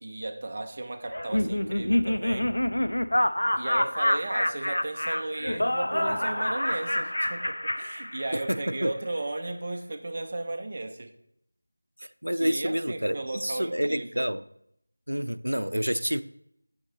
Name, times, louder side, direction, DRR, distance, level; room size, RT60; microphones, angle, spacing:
voice 1, 0.0-2.5 3.6-11.1 12.3-14.3, right 2 dB, 35° right, 6 dB, 0.7 m, -35 dB
Laughter, 1.1-8.6, left 1 dB, 75° left, 0.4 m, -27 dB
voice 2, 8.3-8.9 12.2-14.4 15.1-16.2, equal, 85° right, 13 dB, 0.5 m, -28 dB
9.6 x 6.5 x 3.1 m, 0.75 s
figure-of-eight pair, 170°, 0 cm